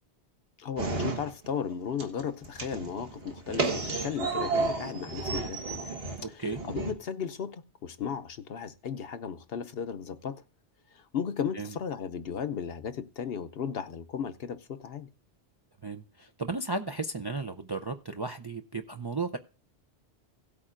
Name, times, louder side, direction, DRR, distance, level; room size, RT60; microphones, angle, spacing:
voice 1, 0.6-5.9 6.3-10.4 10.9-15.1, left 7 dB, 65° left, 0.9 m, -35 dB
sound 1, 0.8-1.7 2.0-6.9, right 3 dB, 60° right, 1.7 m, -32 dB
voice 2, 15.8-19.4, right 3 dB, 35° right, 0.4 m, -34 dB
17.0 x 8.5 x 2.5 m
omnidirectional pair, 1.1 m